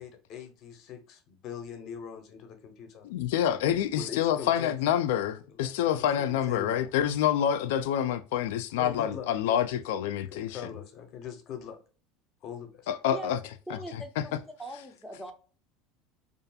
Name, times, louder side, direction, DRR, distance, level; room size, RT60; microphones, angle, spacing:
voice 1, 0.0-3.1 3.9-4.7 5.5-6.9 7.7-7.9 8.3-8.4 8.8-9.8 10.3-11.8 12.4-12.9, left 8 dB, 40° left, 0.6 m, -42 dB
voice 2, 3.0-10.6 12.9-13.4 13.7-14.0, left 10 dB, 85° left, 0.3 m, -27 dB
voice 3, 13.7-15.3, right 1 dB, ahead, 0.4 m, -41 dB
2.4 x 2.3 x 2.6 m
cardioid pair, 170°, 0 cm